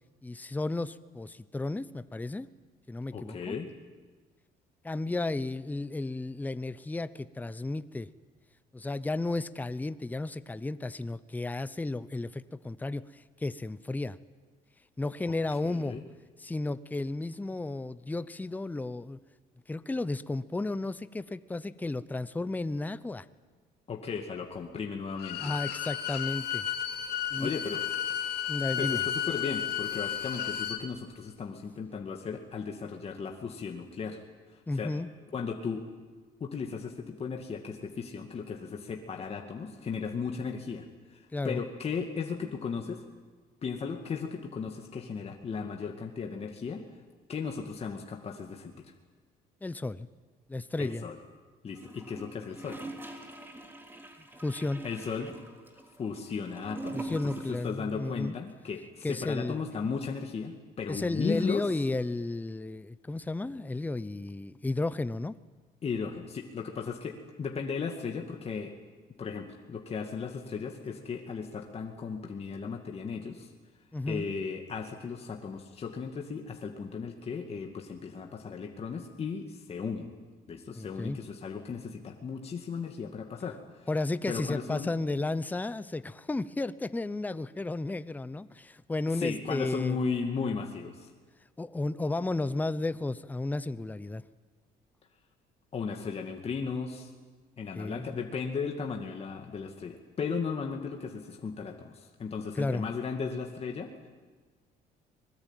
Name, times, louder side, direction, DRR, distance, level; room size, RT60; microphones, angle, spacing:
voice 1, 0.2-2.5 2.9-3.6 4.8-8.1 8.7-14.2 15.0-16.0 16.4-19.2 19.7-23.3 25.4-26.7 27.3-27.5 28.5-29.0 34.7-35.1 41.3-41.6 49.6-50.1 50.5-51.1 54.4-54.8 56.9-58.3 59.0-59.6 60.9-65.3 73.9-74.3 80.7-81.2 83.9-90.0 91.6-94.2 97.7-98.2 102.5-102.8, left 2 dB, 10° left, 15 dB, 0.7 m, -33 dB
voice 2, 3.1-3.7 15.2-15.4 15.6-16.0 23.9-25.5 27.4-27.8 28.8-34.2 34.8-34.9 35.3-35.8 36.4-43.0 43.6-46.8 47.3-48.9 50.8-51.2 51.6-52.8 54.8-55.3 56.0-57.2 57.5-61.6 65.8-68.7 69.2-73.5 74.1-80.1 80.5-83.9 84.3-84.9 89.1-91.1 95.7-97.1 97.6-103.9, left 5 dB, 35° left, 2 dB, 2.2 m, -36 dB
Bowed string instrument, 25.1-30.8, left 10 dB, 75° left, 2.7 m, -33 dB
Gurgling / Toilet flush, 51.7-57.8 58.1-58.2, right 2 dB, 10° right, 3.5 m, -43 dB
24.0 x 21.0 x 9.1 m, 1.4 s
cardioid pair, 110°, 17 cm